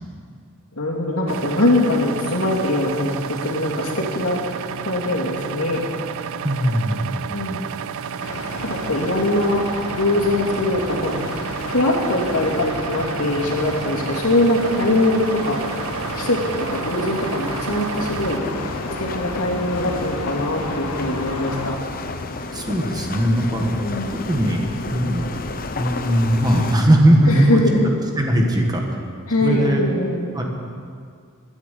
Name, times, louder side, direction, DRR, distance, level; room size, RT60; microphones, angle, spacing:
voice 1, 0.8-5.8 7.3-7.6 8.6-9.6 9.9-11.2 11.7-18.7 19.0-21.8 23.8-24.2 27.3-27.9 29.3-30.4, left 1 dB, 65° left, -2 dB, 2.7 m, -22 dB
sound 1, 1.3-18.4, right 7 dB, 65° right, 0.4 m, -31 dB
voice 2, 6.4-7.3 22.5-24.7 24.9-25.3 25.8-27.6 28.2-28.8 29.4-29.8 30.3-30.4, right 1 dB, 20° right, 1 dB, 1.4 m, -19 dB
sound 2, 8.2-21.7, left 2 dB, 85° left, 1.6 m, -31 dB
sound 3, 17.9-26.8, left 3 dB, 40° left, 0.8 m, -31 dB
12.0 x 10.0 x 8.4 m, 2.2 s
head